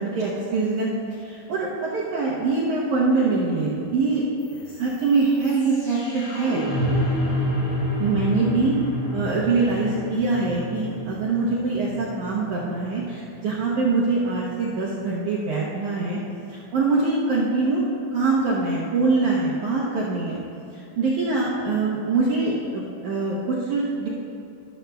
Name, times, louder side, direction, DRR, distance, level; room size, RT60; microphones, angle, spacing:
voice 1, 0.0-4.2 4.5-6.6 8.0-8.8 9.1-16.2 16.5-17.8 18.1-20.4 20.7-24.1, right 3 dB, 70° right, -7 dB, 1.9 m, -24 dB
sound 1, 4.4-14.4, left 1 dB, 50° left, 2.1 m, -29 dB
13.0 x 12.0 x 2.3 m, 2.7 s
omnidirectional pair, 4.7 m